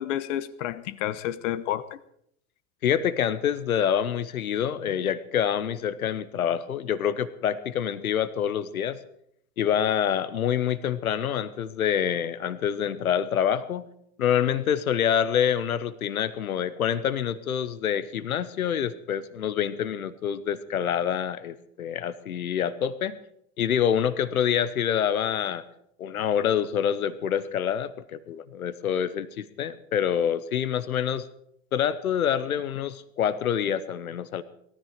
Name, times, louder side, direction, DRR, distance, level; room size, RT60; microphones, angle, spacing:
voice 1, 0.0-2.0 4.8-4.9, left 12 dB, 60° left, 14 dB, 1.1 m, -30 dB
voice 2, 2.8-9.0 9.6-13.9 14.2-23.2 23.6-25.6 26.0-31.3 31.7-34.4, left 9 dB, 80° left, 14 dB, 1.0 m, -26 dB
18.0 x 13.5 x 5.1 m, 0.71 s
hypercardioid pair, 90°, 42 cm